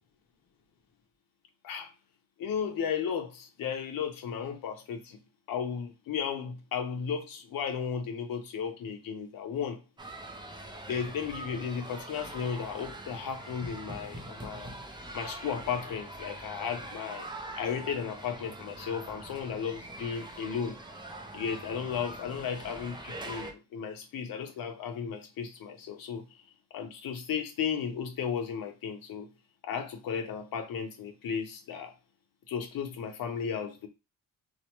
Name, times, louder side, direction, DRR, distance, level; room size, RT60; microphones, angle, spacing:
voice 1, 2.4-5.2 5.5-9.8 10.9-14.7 15.1-17.3 17.6-20.8 21.3-26.4 26.7-29.3 29.6-31.9 32.5-33.9, left 7 dB, 85° left, 0.8 m, -34 dB
sound 1, 10.0-23.5, right 1 dB, 15° right, 0.3 m, -43 dB
2.8 x 2.1 x 2.9 m
wide cardioid pair, 160°, 33 cm